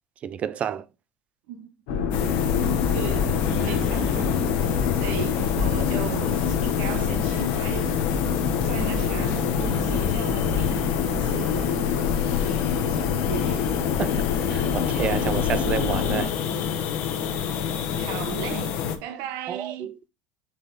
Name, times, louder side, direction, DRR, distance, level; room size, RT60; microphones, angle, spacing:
voice 1, 0.2-0.9 3.6-3.8 14.0-16.3 19.5-20.1, right 8 dB, 35° right, 0.5 m, -30 dB
sound 1, 1.9-16.3, left 7 dB, 85° left, 1.9 m, -26 dB
sound 2, 2.1-19.0, left 7 dB, 65° left, 1.3 m, -28 dB
sound 3, 2.8-9.1, left 5 dB, 20° left, 0.4 m, -37 dB
voice 2, 2.9-3.4 3.7-4.3 4.7-8.0 8.5-12.3 12.8-13.7 17.8-19.9, right 11 dB, 70° right, 1.2 m, -37 dB
7.2 x 3.7 x 3.7 m
cardioid pair, 140°, 4 cm